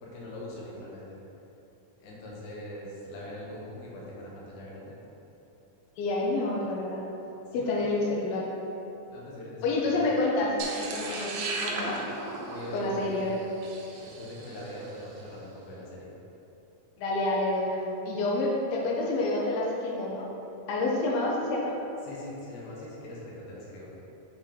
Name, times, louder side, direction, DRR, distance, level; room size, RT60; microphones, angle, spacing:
voice 1, 0.0-1.2 2.0-5.0 7.5-8.0 9.1-10.1 12.5-13.4 14.0-16.1 22.0-23.9, left 1 dB, 65° left, -5 dB, 2.2 m, -42 dB
voice 2, 6.0-7.0 7.5-8.5 9.6-11.3 11.6-12.0 12.7-13.4 17.0-20.3 20.7-21.8, left 2 dB, 90° left, -3 dB, 2.6 m, -28 dB
sound 1, 10.6-14.9, right 3 dB, 80° right, 2.4 m, -36 dB
7.0 x 3.5 x 4.5 m, 3.0 s
omnidirectional pair, 4.2 m